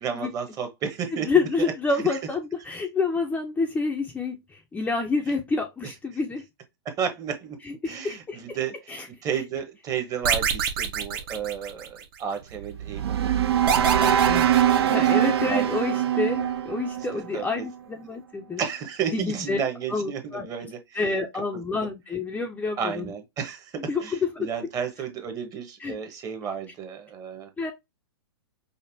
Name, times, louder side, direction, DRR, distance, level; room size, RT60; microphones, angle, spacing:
voice 1, 0.0-1.3 2.1-2.2 6.8-7.6 7.9-14.4 14.7-15.0 15.4-15.7 17.3-17.7 18.6-21.0 21.7-21.9 22.8-27.5, right 7 dB, 25° right, 1.0 m, -33 dB
voice 2, 1.1-6.5 7.6-8.6 8.9-9.1 14.3-14.5 14.9-18.6 19.1-19.6 19.9-20.5 20.9-23.1 23.9-24.5 25.8-26.0 27.6-27.7, left 4 dB, 10° left, 0.5 m, -28 dB
sound 1, 10.2-12.2 13.7-15.5, right 7 dB, 55° right, 0.9 m, -27 dB
sound 2, 12.5-17.8, right 10 dB, 75° right, 0.4 m, -23 dB
5.3 x 2.1 x 2.6 m
hypercardioid pair, 120°, 14 cm